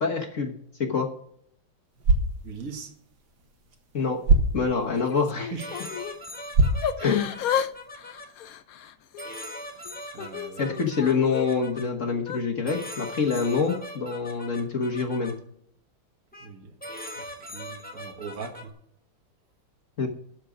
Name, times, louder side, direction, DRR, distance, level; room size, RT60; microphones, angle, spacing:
voice 1, 0.0-0.5 0.8-1.1 3.9-4.2 4.5-5.5 7.0-7.4 10.6-15.3 20.0-20.1, left 5 dB, 40° left, 1.4 m, -26 dB
sound 1, 1.9-7.9, right 2 dB, 65° right, 2.1 m, -27 dB
voice 2, 2.4-2.9 5.4-5.8 10.1-10.8 16.4-16.7 17.2-18.7, right 5 dB, 45° right, 1.8 m, -40 dB
Yell / Crying sobbing, 4.9-6.2 6.8-7.7 8.0-9.3 9.8-11.5 12.2-12.4, left 9 dB, 70° left, 0.8 m, -32 dB
sound 2, 5.6-8.3 9.2-11.8 12.7-15.3 16.3-16.5 16.8-18.7, left 1 dB, 5° left, 1.0 m, -40 dB
13.0 x 5.0 x 8.2 m
omnidirectional pair, 2.3 m